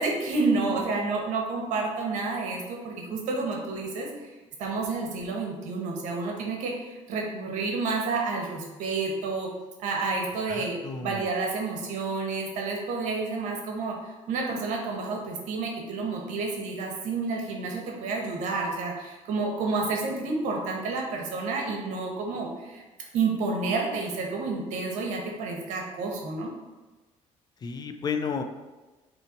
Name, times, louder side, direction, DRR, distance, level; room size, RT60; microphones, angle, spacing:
voice 1, 0.0-4.1 4.6-9.5 9.8-22.8 23.1-26.5, right 3 dB, 75° right, 0 dB, 1.0 m, -30 dB
voice 2, 10.5-11.2 27.6-28.4, left 5 dB, 35° left, 6 dB, 0.4 m, -32 dB
4.0 x 3.1 x 4.1 m, 1.2 s
cardioid pair, 110°, 13 cm